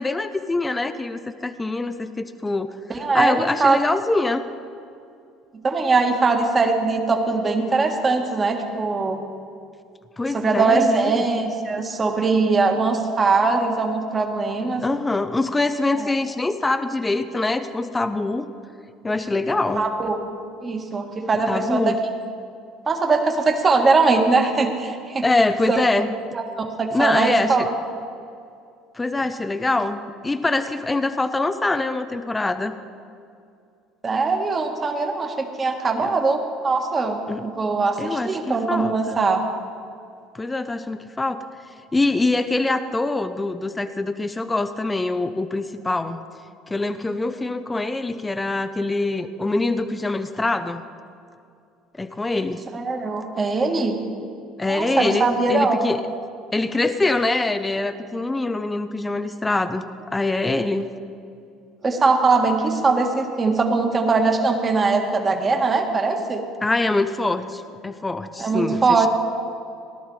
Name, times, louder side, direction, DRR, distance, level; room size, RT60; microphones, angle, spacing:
voice 1, 0.0-2.7 3.1-4.4 10.2-11.3 14.8-18.5 19.0-19.8 21.5-22.0 25.2-26.1 26.9-27.7 28.9-32.7 36.0-36.1 37.3-37.4 38.0-39.2 40.3-41.4 41.9-46.2 46.7-50.8 52.0-52.6 54.6-56.0 56.5-60.9 66.6-69.1, left 2 dB, 15° left, 9 dB, 0.6 m, -24 dB
voice 2, 2.9-3.8 5.6-9.2 10.3-14.8 16.0-16.1 19.8-20.2 20.6-21.9 22.9-25.2 25.7-25.8 26.3-27.7 34.0-39.4 52.7-54.0 54.7-55.9 61.8-66.4 68.4-69.1, right 4 dB, 30° right, 3 dB, 1.8 m, -21 dB
17.5 x 11.5 x 4.8 m, 2.4 s
supercardioid pair, 100°, 0 cm